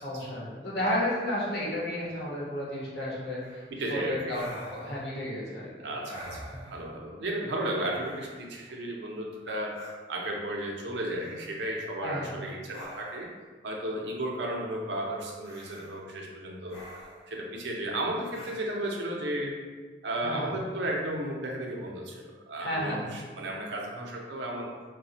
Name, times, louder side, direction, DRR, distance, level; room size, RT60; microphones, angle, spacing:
voice 1, 0.0-3.6 3.9-4.4 4.7-5.9 12.0-12.4 20.2-20.5 22.6-23.1, left 1 dB, 65° left, -6 dB, 1.0 m, -32 dB
breathing sounds, 3.4-3.7 4.3-5.1 6.0-6.9 7.9-8.6 9.7-9.9 11.1-11.7 12.7-13.3 15.4-16.0 16.7-17.3 18.3-18.6, equal, 35° left, 1.1 m, -45 dB
voice 2, 3.7-4.4 5.8-9.8 10.1-13.3 13.6-16.8 17.3-19.5 20.0-24.7, right 1 dB, 80° right, -1 dB, 0.6 m, -34 dB
4.0 x 2.2 x 2.7 m, 1.4 s
head